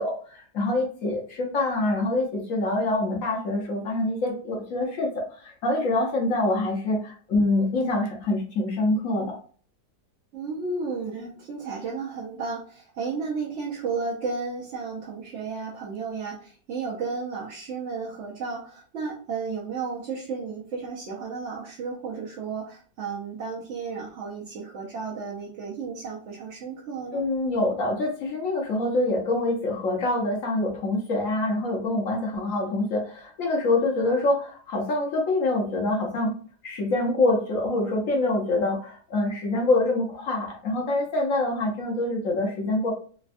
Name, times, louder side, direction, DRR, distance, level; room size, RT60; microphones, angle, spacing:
voice 1, 0.0-9.4 27.1-36.3 36.6-42.9, left 2 dB, 60° left, 0 dB, 0.9 m, -25 dB
voice 2, 10.3-27.2, right 4 dB, 60° right, -5 dB, 0.8 m, -33 dB
3.4 x 2.2 x 2.4 m, 0.43 s
omnidirectional pair, 1.8 m